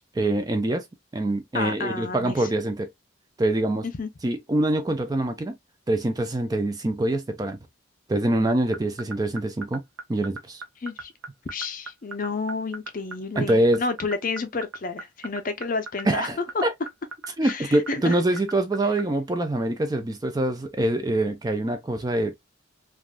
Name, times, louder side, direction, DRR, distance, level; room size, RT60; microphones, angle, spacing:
voice 1, 0.1-0.9 1.1-2.9 3.4-3.9 4.2-5.6 5.9-7.6 8.1-9.8 10.1-10.6 13.4-13.8 16.0-16.7 17.4-22.4, right 1 dB, 20° right, 0.3 m, -24 dB
voice 2, 1.5-2.5 3.8-4.1 10.8-11.1 11.5-16.3 16.5-16.6 17.4-18.2, left 4 dB, 40° left, 0.5 m, -30 dB
sound 1, 8.5-19.0, right 4 dB, 85° right, 0.6 m, -35 dB
3.3 x 2.5 x 2.2 m
head